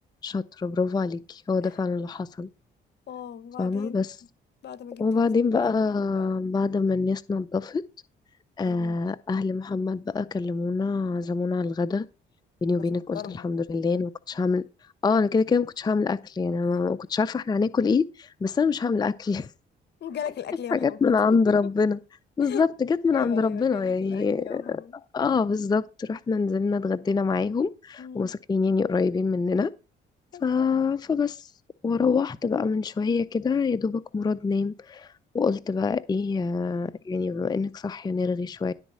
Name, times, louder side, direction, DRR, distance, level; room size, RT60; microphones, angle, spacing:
voice 1, 0.2-2.5 3.6-4.2 5.0-7.8 8.6-12.1 12.6-14.6 15.0-19.5 20.7-22.0 22.4-24.8 25.1-29.7 30.4-31.5 31.8-35.1 35.3-38.7, left 4 dB, 20° left, 0.4 m, -25 dB
voice 2, 3.1-4.0 4.6-5.3 5.8-5.9 6.1-6.4 8.6-9.0 12.7-12.9 13.1-13.6 20.0-21.2 22.4-22.6 23.1-25.0 28.0-28.3 30.3-30.7, left 9 dB, 60° left, 0.8 m, -38 dB
11.5 x 4.0 x 7.5 m
cardioid pair, 90°, 20 cm